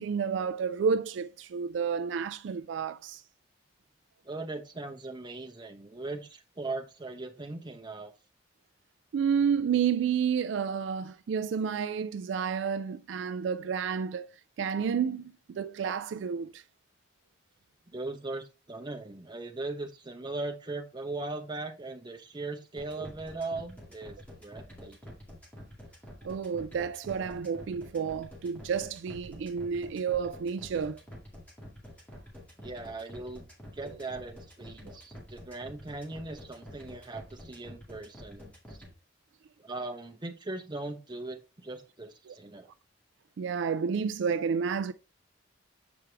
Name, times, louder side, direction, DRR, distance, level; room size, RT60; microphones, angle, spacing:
voice 1, 0.0-3.2 9.1-14.3 14.6-16.6 26.2-31.0 33.8-33.9 42.3-42.4 43.4-44.9, right 6 dB, 70° right, 0.3 m, -30 dB
voice 2, 4.2-8.1 17.9-25.2 32.6-33.4 33.7-38.8 39.6-42.7, right 2 dB, 25° right, 0.8 m, -39 dB
sound 1, 22.8-38.9, equal, 5° left, 2.1 m, -47 dB
7.1 x 4.7 x 3.3 m
head